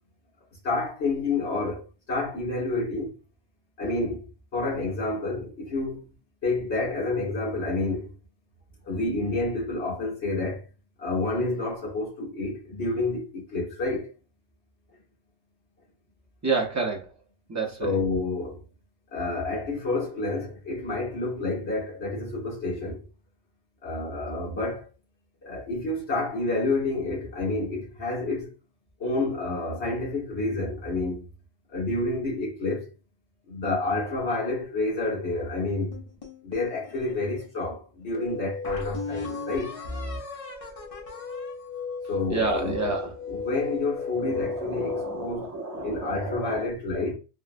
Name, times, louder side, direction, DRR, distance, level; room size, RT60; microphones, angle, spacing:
voice 1, 0.6-3.1 3.8-4.2 4.5-6.1 6.4-8.2 8.8-10.7 11.0-14.1 17.8-18.6 19.1-23.0 23.8-24.8 25.4-28.5 29.0-31.2 31.7-32.9 33.5-36.0 36.4-39.7 42.1-42.8 43.2-45.6 45.8-47.1, left 2 dB, 60° left, 1.5 m, -29 dB
voice 2, 16.4-17.0 17.5-17.9 42.3-43.1 44.2-46.7, right 3 dB, 25° right, 0.4 m, -30 dB
sound 1, 35.9-37.5 38.0-38.1 38.6-42.8, left 4 dB, 35° left, 0.6 m, -38 dB
sound 2, 38.1-45.3, left 4 dB, 10° right, 0.9 m, -36 dB
3.7 x 2.1 x 2.5 m
omnidirectional pair, 1.3 m